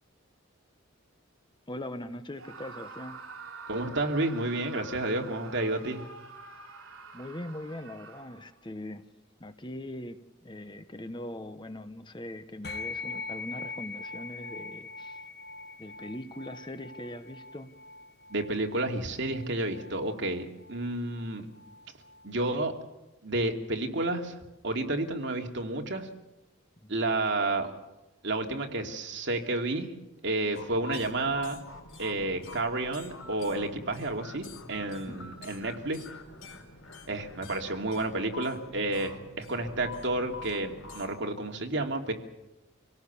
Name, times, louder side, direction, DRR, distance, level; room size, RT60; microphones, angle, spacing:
voice 1, 1.7-3.2 7.1-9.0 9.4-15.2 15.8-17.7 26.8-27.0 35.1-35.3, left 1 dB, 20° left, 9 dB, 1.1 m, -41 dB
Screaming, 2.3-8.6, right 4 dB, 80° right, 3.8 m, -46 dB
voice 2, 3.7-6.0 18.3-21.5 22.2-22.7 23.2-24.3 24.6-26.1 26.9-27.7 28.2-29.9 30.2-31.6 32.0-36.0 37.1-42.1, right 2 dB, 60° right, 3 dB, 2.7 m, -31 dB
sound 1, 12.6-22.3, left 4 dB, 50° left, 1.0 m, -43 dB
sound 2, 30.5-41.1, left 3 dB, 80° left, 4.4 m, -46 dB
26.5 x 17.5 x 7.2 m, 0.98 s
head